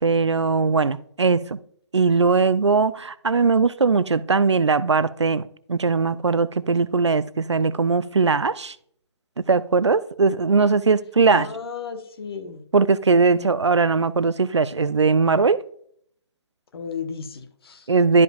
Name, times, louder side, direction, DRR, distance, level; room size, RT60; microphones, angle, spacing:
voice 1, 0.0-1.6 1.9-8.8 9.4-11.5 12.7-15.6 17.9-18.2, right 4 dB, 90° right, 0.5 m, -20 dB
voice 2, 11.3-12.6 13.3-13.5 16.7-17.9, left 6 dB, 60° left, 1.3 m, -34 dB
12.0 x 5.4 x 2.4 m
figure-of-eight pair, 135°, 14 cm